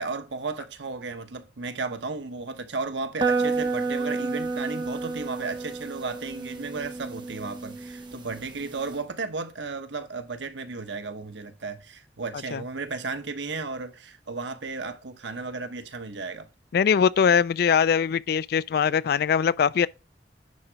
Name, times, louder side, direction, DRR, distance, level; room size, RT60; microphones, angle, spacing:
voice 1, 0.0-16.5, right 4 dB, 85° right, 1.1 m, -34 dB
sound 1, 3.2-9.0, right 3 dB, 25° right, 1.4 m, -30 dB
voice 2, 16.7-19.9, left 7 dB, 60° left, 0.3 m, -21 dB
9.7 x 3.9 x 4.6 m
head